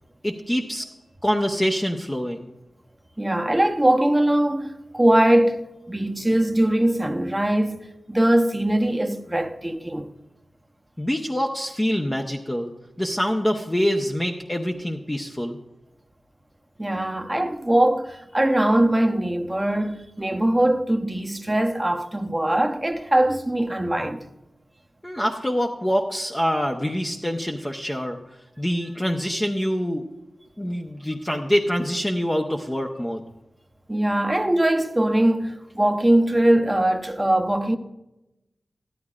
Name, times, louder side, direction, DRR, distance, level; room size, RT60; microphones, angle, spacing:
voice 1, 0.2-0.8 1.2-2.5 11.0-12.7 13.0-15.6 25.0-28.2 28.6-30.0 30.6-33.2, equal, 20° left, 0.8 m, -25 dB
voice 2, 3.2-10.1 16.8-24.2 33.9-37.8, right 1 dB, 15° right, 0.8 m, -21 dB
12.5 x 11.5 x 2.4 m
cardioid pair, 50°, 0 cm